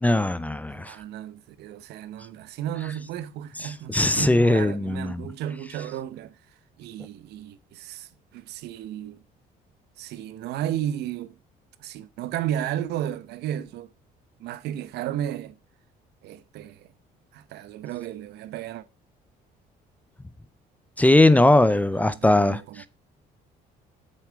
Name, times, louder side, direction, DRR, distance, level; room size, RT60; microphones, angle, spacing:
voice 1, 0.0-0.9 3.9-5.3 21.0-22.9, left 2 dB, 10° left, 0.6 m, -20 dB
voice 2, 0.7-6.4 6.8-9.2 10.0-11.3 11.8-13.9 14.4-15.6 16.2-16.9 17.3-18.8 21.9-22.9, right 11 dB, 80° right, 0.9 m, -33 dB
7.7 x 7.3 x 4.7 m
cardioid pair, 110°, 17 cm